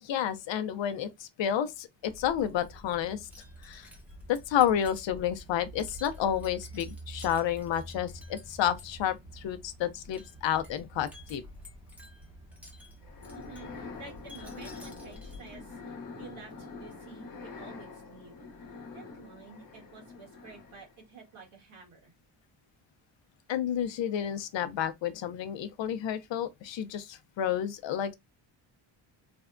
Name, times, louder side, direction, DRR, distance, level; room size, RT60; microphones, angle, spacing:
voice 1, 0.0-3.3 3.6-3.9 4.3-11.4 23.5-28.1, left 10 dB, 65° left, 0.5 m, -30 dB
Wind chime, 2.0-15.8, right 1 dB, 5° right, 0.7 m, -48 dB
sound 1, 13.0-21.0, left 4 dB, 40° left, 0.9 m, -45 dB
voice 2, 13.3-15.8 16.2-18.4 18.9-22.1, right 4 dB, 80° right, 1.5 m, -50 dB
3.3 x 2.1 x 2.4 m
cardioid pair, 115°, 48 cm